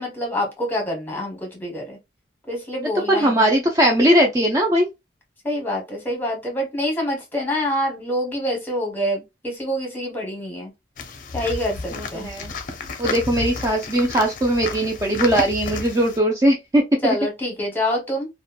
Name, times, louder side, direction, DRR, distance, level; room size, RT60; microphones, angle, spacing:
voice 1, 0.0-2.0 2.5-3.4 5.4-10.7 11.3-12.3 17.0-18.3, equal, 10° left, 1.0 m, -26 dB
voice 2, 2.9-4.9 11.9-12.5 13.0-17.2, right 1 dB, 20° right, 0.3 m, -19 dB
sound 1, 11.0-16.2, left 4 dB, 50° left, 0.5 m, -32 dB
2.9 x 2.1 x 2.3 m
head